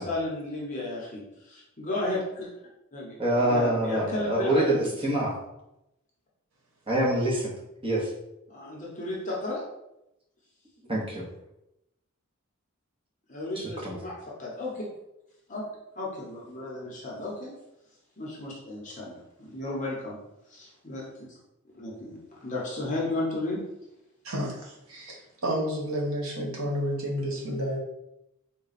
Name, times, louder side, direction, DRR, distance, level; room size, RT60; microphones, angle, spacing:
voice 1, 0.0-2.5 2.9-3.2 3.4-4.9 8.5-9.6 13.3-14.8 15.5-15.6 16.0-17.5 18.2-20.2 20.5-21.4 21.7-23.6, left 2 dB, 35° left, -4 dB, 0.8 m, -34 dB
voice 2, 3.2-5.4 6.9-7.5 7.8-8.1 10.9-11.2 13.6-13.9, right 1 dB, 25° right, -4 dB, 1.0 m, -25 dB
voice 3, 24.2-27.8, equal, 70° right, -2 dB, 1.2 m, -30 dB
3.9 x 2.2 x 4.0 m, 0.88 s
head